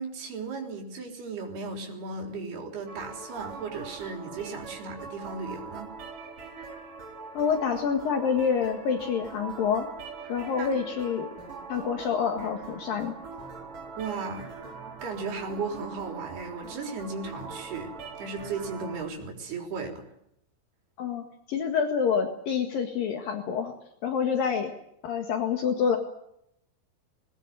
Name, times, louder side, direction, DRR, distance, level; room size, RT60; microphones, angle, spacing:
voice 1, 0.0-5.9 10.6-10.8 14.0-14.5 15.0-20.1, right 4 dB, 80° right, 2 dB, 5.8 m, -36 dB
sound 1, 2.9-19.0, right 5 dB, 55° right, 5.3 m, -42 dB
voice 2, 7.3-9.9 10.3-11.3 11.7-13.1 21.0-23.7 24.0-24.7 25.0-26.0, left 6 dB, 65° left, 4 dB, 3.4 m, -27 dB
21.0 x 18.5 x 9.2 m, 0.76 s
omnidirectional pair, 4.6 m